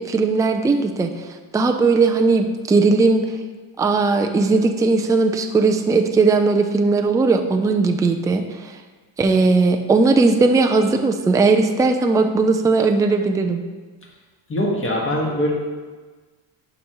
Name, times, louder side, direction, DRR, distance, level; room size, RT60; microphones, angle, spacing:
voice 1, 0.1-1.1 1.5-3.3 3.8-8.4 9.2-13.6, right 3 dB, 10° right, 5 dB, 0.3 m, -18 dB
voice 2, 14.5-15.5, left 1 dB, 25° left, -2 dB, 1.6 m, -22 dB
11.5 x 5.1 x 3.0 m, 1.4 s
cardioid pair, 125°, 45 cm